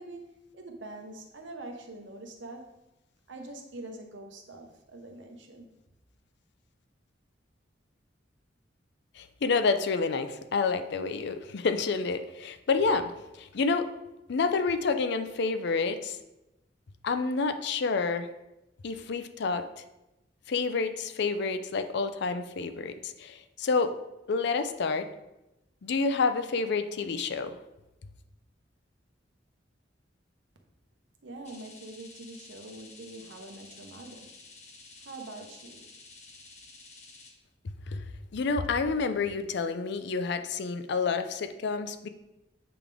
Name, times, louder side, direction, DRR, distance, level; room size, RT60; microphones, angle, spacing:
voice 1, 0.0-2.7 3.3-5.7 31.2-34.4 35.0-35.9, right 2 dB, 75° right, 3 dB, 0.9 m, -44 dB
voice 2, 9.2-13.9 14.3-16.2 17.0-18.3 18.8-19.8 20.5-23.9 24.3-25.1 25.8-27.6 37.9-38.0 38.3-42.1, left 4 dB, 65° left, 9 dB, 0.5 m, -29 dB
sound 1, 31.4-37.3, left 3 dB, 40° left, 1.2 m, -51 dB
7.8 x 3.6 x 3.4 m, 0.94 s
head